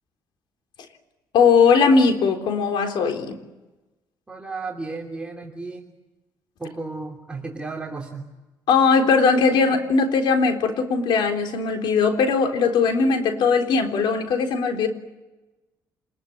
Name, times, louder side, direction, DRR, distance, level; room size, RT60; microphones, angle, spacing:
voice 1, 1.3-3.4 8.7-14.9, left 5 dB, 80° left, 5 dB, 3.8 m, -19 dB
voice 2, 4.3-5.8 6.6-8.3, right 3 dB, 15° right, 0 dB, 3.1 m, -33 dB
27.5 x 21.0 x 8.8 m, 1.1 s
cardioid pair, 110°, 8 cm